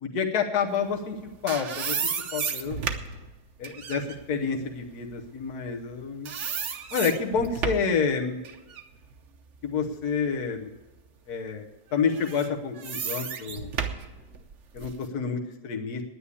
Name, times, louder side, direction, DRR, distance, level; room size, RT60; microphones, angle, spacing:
voice 1, 0.0-1.2 1.4-2.0 2.3-2.9 3.6-6.3 6.9-8.4 9.6-10.7 11.3-13.7 14.7-16.0, left 6 dB, 85° left, 2 dB, 1.5 m, -28 dB
sound 1, 1.0-5.9 6.3-8.0 8.4-10.4 10.9-11.0 12.0-15.1, right 6 dB, 55° right, 1.1 m, -34 dB
9.7 x 9.7 x 8.3 m, 1.1 s
omnidirectional pair, 1.6 m